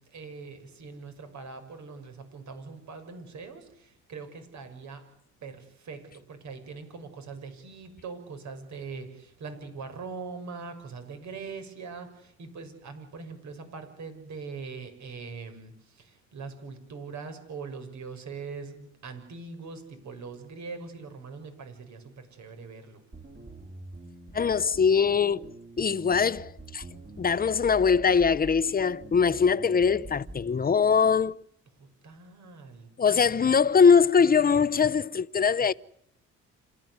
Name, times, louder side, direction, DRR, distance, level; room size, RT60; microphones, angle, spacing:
voice 1, 0.0-5.0 5.4-23.0 29.8-30.0 31.8-32.9, right 4 dB, 65° right, 6.4 m, -42 dB
sound 1, 23.1-30.5, right 2 dB, 35° right, 4.8 m, -45 dB
voice 2, 24.3-25.5 25.8-26.8 27.2-31.4 33.0-35.7, left 6 dB, 30° left, 0.9 m, -22 dB
27.0 x 15.0 x 9.6 m
cardioid pair, 90°, 30 cm